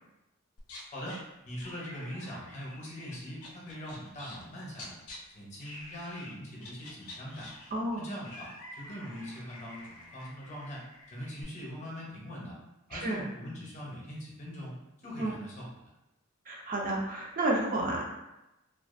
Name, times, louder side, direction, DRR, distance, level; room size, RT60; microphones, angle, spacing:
sound 1, 0.6-1.2 1.6-4.5 4.7-5.2 5.6-6.3 6.6-11.4, left 2 dB, 70° left, 0.5 m, -48 dB
voice 1, 0.9-5.0 5.3-7.5 8.0-12.6 12.9-15.7, equal, 35° left, -4 dB, 0.7 m, -42 dB
voice 2, 7.7-8.1 12.9-13.2 15.2-15.3 16.5-18.0, right 1 dB, 40° right, -1 dB, 0.3 m, -31 dB
2.3 x 2.3 x 2.4 m, 0.94 s
head